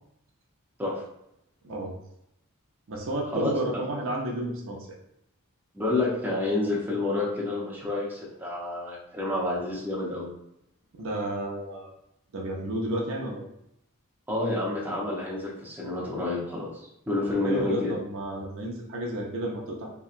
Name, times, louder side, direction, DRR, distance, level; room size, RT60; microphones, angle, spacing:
voice 1, 1.6-2.0 2.9-4.9 11.0-11.9 12.3-13.4 17.4-19.9, right 1 dB, 60° right, -1 dB, 0.5 m, -31 dB
voice 2, 3.3-4.0 5.7-10.3 14.3-16.7 17.1-17.9, left 2 dB, 10° right, -6 dB, 0.6 m, -29 dB
2.8 x 2.2 x 2.4 m, 0.78 s
head